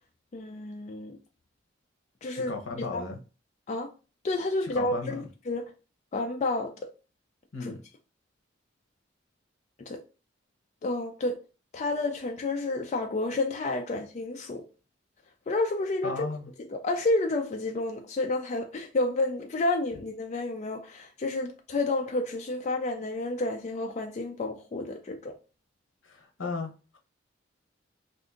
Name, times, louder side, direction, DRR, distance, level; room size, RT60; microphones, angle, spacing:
voice 1, 0.3-1.2 2.2-3.0 3.7-3.9 4.2-5.7 6.1-6.9 7.6-7.7 9.9-10.0 10.8-11.4 11.7-14.7 15.5-16.3 16.7-25.4, left 2 dB, 35° left, 0.3 m, -30 dB
voice 2, 2.5-3.2 4.6-5.3 7.5-7.8 16.0-16.5 26.0-27.0, left 4 dB, 80° left, 0.8 m, -35 dB
2.7 x 2.5 x 3.6 m
head